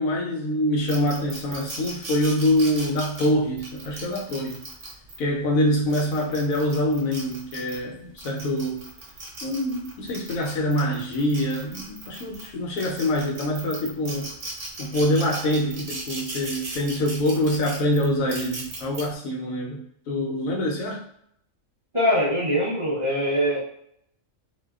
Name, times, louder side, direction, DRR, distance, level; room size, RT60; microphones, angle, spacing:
voice 1, 0.0-4.6 5.2-8.9 9.4-14.3 14.8-19.8 20.1-21.0, left 1 dB, 80° left, -1 dB, 1.0 m, -25 dB
sound 1, 0.9-5.2 5.7-7.8 8.2-12.5 12.8-19.0, right 2 dB, 65° right, 1.0 m, -37 dB
voice 2, 21.9-23.7, equal, 35° right, -9 dB, 0.5 m, -23 dB
2.6 x 2.1 x 2.3 m, 0.69 s
omnidirectional pair, 1.4 m